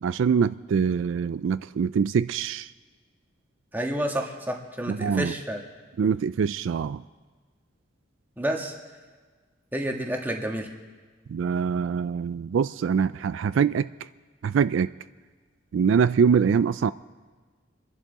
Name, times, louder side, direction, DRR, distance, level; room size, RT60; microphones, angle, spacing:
voice 1, 0.0-2.7 4.9-5.3 6.0-7.0 11.3-13.9 14.4-14.9 15.7-16.9, right 6 dB, 75° right, 15 dB, 0.3 m, -24 dB
voice 2, 3.7-5.6 8.4-8.7 9.7-10.7, right 1 dB, 10° right, 1 dB, 1.5 m, -29 dB
26.5 x 11.0 x 4.1 m, 1.4 s
head